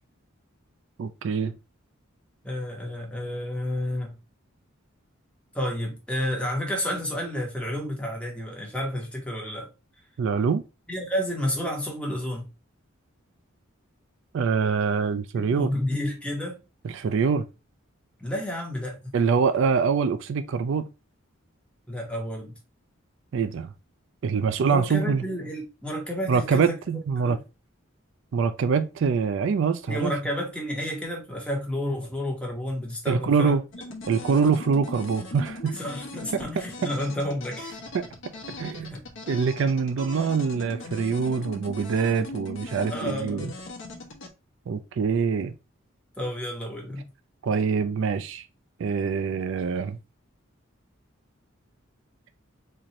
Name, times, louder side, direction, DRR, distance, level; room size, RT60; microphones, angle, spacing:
voice 1, 1.0-1.5 10.2-10.6 14.3-15.7 16.8-17.4 19.1-20.9 23.3-23.7 24.2-25.2 26.3-27.4 28.3-30.1 33.1-33.6 34.1-35.8 36.3-36.4 36.8-36.9 37.9-38.1 38.6-38.9 39.3-43.5 44.7-45.5 47.4-48.4 48.8-50.0, right 5 dB, 65° right, 0.4 m, -24 dB
voice 2, 2.4-4.2 5.5-9.7 10.9-12.5 15.3-16.6 18.2-19.1 21.9-22.6 24.6-26.7 27.2-27.4 29.9-33.6 35.7-37.8 38.9-39.0 42.9-43.5 46.2-47.0, left 1 dB, 5° left, 1.2 m, -31 dB
sound 1, 33.7-44.3, left 2 dB, 65° left, 0.9 m, -39 dB
4.3 x 2.6 x 2.9 m
head